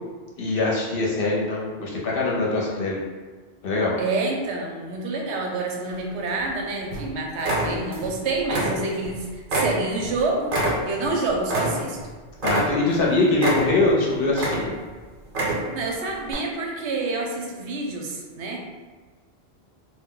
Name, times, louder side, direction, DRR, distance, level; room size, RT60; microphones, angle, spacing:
voice 1, 0.4-3.0 3.6-4.0 12.4-14.7, left 2 dB, 60° left, -4 dB, 0.8 m, -23 dB
voice 2, 4.0-10.6 10.8-12.0 15.7-18.6, right 3 dB, 90° right, 0 dB, 0.9 m, -28 dB
sound 1, 5.9-6.5 6.9-7.1 7.4-8.1 8.4-9.1 9.5-12.1 12.4-13.0 13.4-13.9 14.3-14.9 15.2-15.8 16.3-16.4, right 1 dB, 55° right, 0.8 m, -26 dB
2.2 x 2.1 x 3.6 m, 1.4 s
omnidirectional pair, 1.1 m